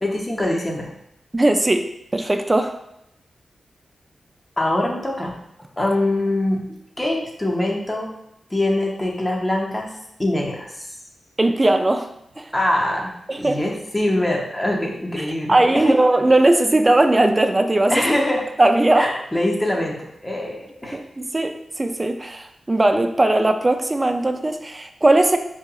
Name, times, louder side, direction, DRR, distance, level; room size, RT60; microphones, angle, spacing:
voice 1, 0.0-0.9 4.6-5.3 5.8-6.6 7.0-8.1 8.5-9.9 10.2-10.9 12.5-16.0 17.9-18.5 19.0-21.0, left 1 dB, 25° left, -1 dB, 0.7 m, -23 dB
voice 2, 1.3-1.9 2.1-2.8 11.4-12.1 12.4-12.5 13.3-13.6 15.2-18.0 18.6-19.1 20.9-25.4, right 2 dB, 30° right, 7 dB, 0.4 m, -18 dB
4.5 x 2.8 x 2.3 m, 0.79 s
cardioid pair, 40°, 0 cm